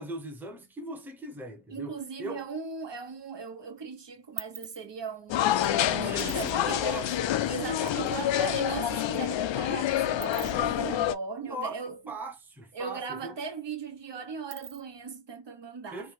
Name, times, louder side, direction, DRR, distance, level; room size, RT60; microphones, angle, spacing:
voice 1, 0.0-2.4 6.0-7.3 7.9-8.1 10.5-10.8 11.5-11.8 12.1-13.3 15.9-16.1, right 1 dB, 5° right, 0.8 m, -39 dB
voice 2, 1.7-6.9 7.5-12.0 12.7-16.1, right 5 dB, 55° right, 1.2 m, -38 dB
sound 1, 2.7-3.5 3.8-8.0 8.3-8.4 8.6-12.5 12.8-12.9 13.2-15.1, right 9 dB, 40° right, 0.5 m, -46 dB
sound 2, 5.3-11.1, left 12 dB, 65° left, 0.5 m, -27 dB
3.2 x 2.2 x 3.3 m
cardioid pair, 65°, 49 cm